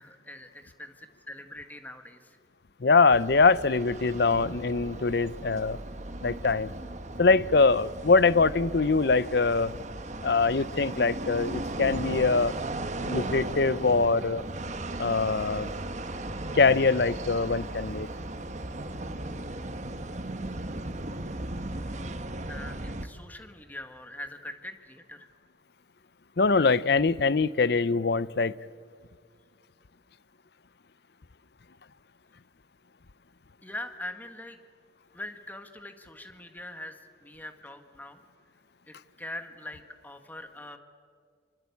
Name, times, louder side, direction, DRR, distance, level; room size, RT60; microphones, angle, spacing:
voice 1, 0.0-2.4 22.5-25.3 33.6-34.6 35.1-38.2 38.9-40.8, left 1 dB, 10° left, 1.6 m, -42 dB
voice 2, 2.8-5.8 6.2-6.7 7.2-9.7 10.2-12.6 13.0-14.4 15.0-15.7 16.5-18.1 26.4-28.5, left 4 dB, 55° left, 0.6 m, -23 dB
sound 1, 3.1-23.1, right 2 dB, 40° right, 1.2 m, -37 dB
26.5 x 24.5 x 8.5 m
head